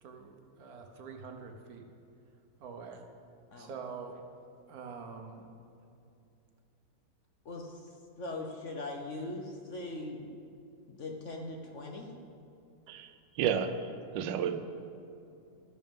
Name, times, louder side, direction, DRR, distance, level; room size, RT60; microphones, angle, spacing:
voice 1, 0.0-1.9 2.6-3.1 3.6-4.2 4.7-5.5, right 5 dB, 60° right, 4 dB, 1.3 m, -45 dB
voice 2, 7.4-10.3 10.9-12.1, left 2 dB, 50° left, 1 dB, 1.0 m, -41 dB
voice 3, 12.9-13.7 14.1-14.6, right 8 dB, 90° right, 9 dB, 1.4 m, -31 dB
13.0 x 11.0 x 3.6 m, 2.6 s
omnidirectional pair, 1.9 m